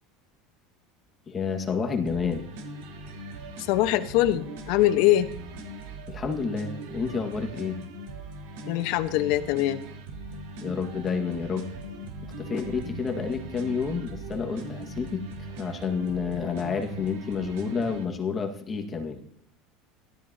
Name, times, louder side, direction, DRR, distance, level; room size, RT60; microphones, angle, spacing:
voice 1, 1.3-2.5 6.1-7.8 10.6-11.7 12.2-19.2, left 5 dB, 25° left, 4 dB, 1.7 m, -30 dB
sound 1, 2.0-18.0, right 1 dB, 85° right, 3.4 m, -40 dB
voice 2, 3.6-5.3 8.7-9.8 12.8-13.0, left 14 dB, 70° left, 10 dB, 1.0 m, -23 dB
16.5 x 13.0 x 2.9 m, 0.65 s
supercardioid pair, 130°, 0 cm